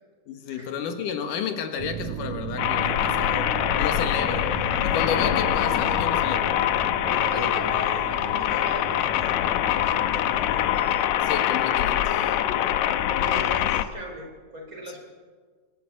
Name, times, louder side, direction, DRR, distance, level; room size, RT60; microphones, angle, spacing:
voice 1, 0.3-4.5 4.8-6.5 7.3-7.5 11.2-12.4, left 7 dB, 90° left, 7 dB, 3.1 m, -32 dB
sound 1, 1.8-9.2, right 13 dB, 80° right, 2.3 m, -37 dB
sound 2, 2.6-13.8, left 11 dB, 75° left, 2.1 m, -24 dB
sound 3, 4.7-11.0, right 7 dB, 60° right, 2.5 m, -43 dB
voice 2, 7.0-9.4 9.8-10.7 12.5-15.0, equal, 25° right, 1 dB, 4.9 m, -38 dB
25.0 x 13.0 x 8.5 m, 1.5 s
omnidirectional pair, 3.6 m